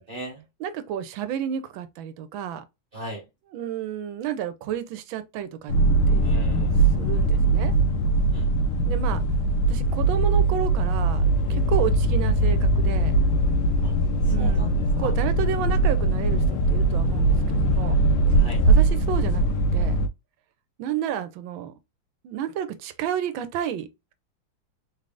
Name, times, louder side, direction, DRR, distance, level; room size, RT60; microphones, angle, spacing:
voice 1, 0.1-0.4 2.9-3.2 6.2-6.7 8.3-8.5 13.8-13.9 14.2-14.7 15.0-15.1 18.3-18.6, equal, 40° right, 0.8 m, -37 dB
voice 2, 0.6-2.6 3.5-5.7 6.1-6.3 7.0-7.7 8.9-9.2 9.6-13.1 14.3-18.0 18.7-20.0 20.8-21.7 22.2-24.1, right 9 dB, 75° right, 1.3 m, -31 dB
sound 1, 5.7-20.1, right 2 dB, 90° left, 1.5 m, -21 dB
3.7 x 3.3 x 2.4 m
omnidirectional pair, 2.3 m